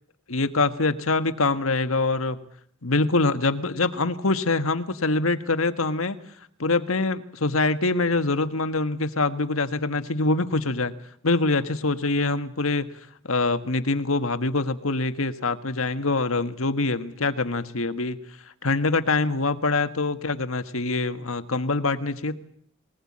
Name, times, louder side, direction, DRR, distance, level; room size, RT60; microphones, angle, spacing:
voice 1, 0.3-2.4 2.8-6.2 6.6-10.9 11.2-12.9 13.2-18.2 18.6-22.3, left 3 dB, 80° left, 10 dB, 1.6 m, -24 dB
21.5 x 19.5 x 8.7 m, 0.64 s
head